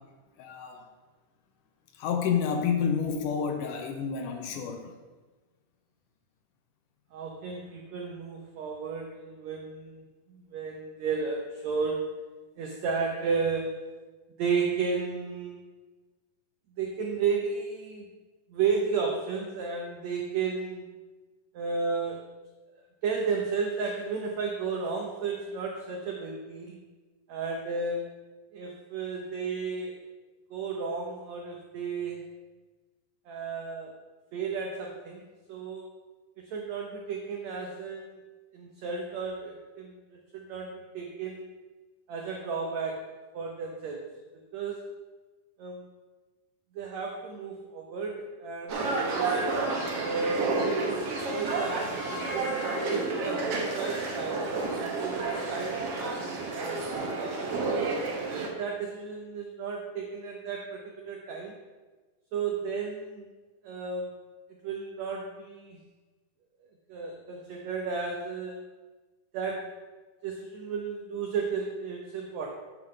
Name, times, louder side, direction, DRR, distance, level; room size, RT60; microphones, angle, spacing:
voice 1, 0.4-0.8 1.9-4.9, left 7 dB, 75° left, 4 dB, 2.1 m, -29 dB
voice 2, 7.1-12.1 12.6-13.9 14.4-15.6 16.8-18.0 18.5-20.8 21.5-22.3 22.7-26.8 27.3-28.1 28.5-30.0 30.5-32.2 33.2-33.9 34.3-35.9 36.4-38.2 38.5-41.5 42.1-44.1 44.5-44.9 45.6-45.9 46.7-49.2 49.9-50.5 51.3-57.9 58.4-61.6 62.3-63.2 63.6-64.2 64.6-65.8 66.9-68.6 69.3-69.8 70.2-72.5, right 5 dB, 85° right, 1 dB, 1.5 m, -33 dB
sound 1, 48.7-58.5, right 3 dB, 60° right, 1.6 m, -30 dB
9.2 x 3.7 x 6.4 m, 1.3 s
omnidirectional pair, 4.2 m